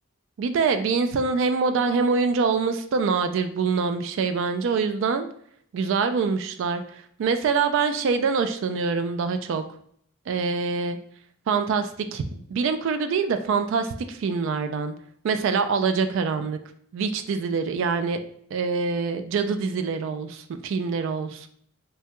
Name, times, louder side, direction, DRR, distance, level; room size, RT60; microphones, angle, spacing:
voice 1, 0.4-5.3 5.7-6.8 7.2-9.6 10.3-11.0 11.5-14.9 15.2-16.6 16.9-18.2 18.5-21.5, right 5 dB, 65° right, 9 dB, 0.3 m, -25 dB
3.3 x 2.2 x 2.9 m, 0.63 s
head